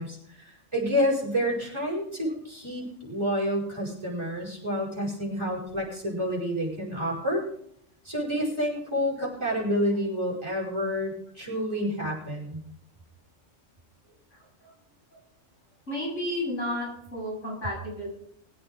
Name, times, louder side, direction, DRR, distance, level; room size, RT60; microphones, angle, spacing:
voice 1, 0.0-7.5 8.0-12.6, equal, 20° right, -5 dB, 6.1 m, -29 dB
voice 2, 15.9-18.1, left 1 dB, 80° left, -4 dB, 8.1 m, -32 dB
21.0 x 8.7 x 5.2 m, 0.68 s
omnidirectional pair, 1.3 m